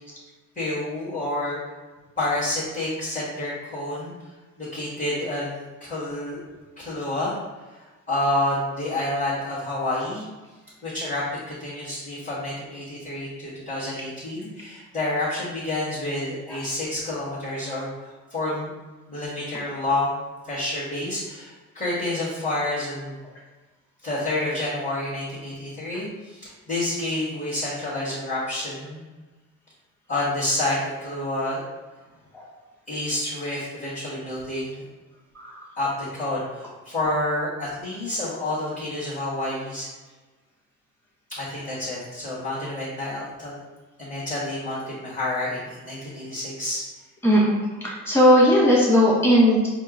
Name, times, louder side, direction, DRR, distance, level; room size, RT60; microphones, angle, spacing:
voice 1, 0.5-1.6 2.2-4.3 4.6-6.4 6.8-7.4 7.7-10.2 10.8-18.7 19.1-23.1 24.0-29.0 30.1-31.6 32.9-34.8 35.8-39.9 41.4-43.6 44.0-46.8, left 1 dB, 25° left, -11 dB, 1.5 m, -29 dB
voice 2, 47.2-47.6 47.8-49.7, equal, 10° left, -5 dB, 1.4 m, -17 dB
4.3 x 2.0 x 3.7 m, 1.2 s
cardioid pair, 90°, 30 cm